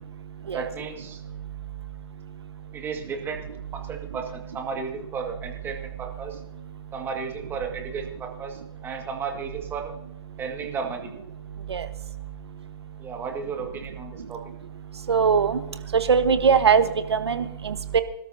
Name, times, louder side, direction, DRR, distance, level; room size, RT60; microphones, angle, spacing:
voice 1, 0.5-1.2 2.7-3.4 3.7-6.4 6.9-9.9 10.4-11.1 13.0-14.4, right 5 dB, 15° right, 3 dB, 2.1 m, -34 dB
voice 2, 15.1-15.6 16.1-18.0, right 6 dB, 80° right, 10 dB, 1.4 m, -21 dB
26.0 x 13.0 x 2.8 m, 0.87 s
hypercardioid pair, 135°, 14 cm